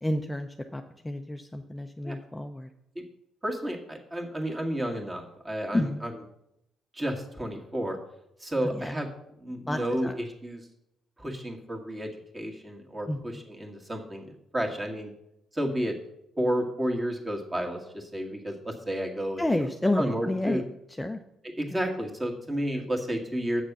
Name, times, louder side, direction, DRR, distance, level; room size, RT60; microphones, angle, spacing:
voice 1, 0.0-2.7 5.7-6.0 8.6-8.9 9.7-10.1 13.1-13.2 19.4-20.6 21.0-21.2 21.7-21.8, left 1 dB, 10° left, 5 dB, 0.6 m, -30 dB
voice 2, 3.4-6.1 6.9-8.0 8.4-9.1 9.4-10.6 11.2-15.1 15.5-15.9 16.4-19.5 20.0-20.6 21.6-23.6, equal, 20° right, 2 dB, 2.0 m, -31 dB
8.1 x 6.6 x 6.1 m, 0.80 s
cardioid pair, 90°, 0 cm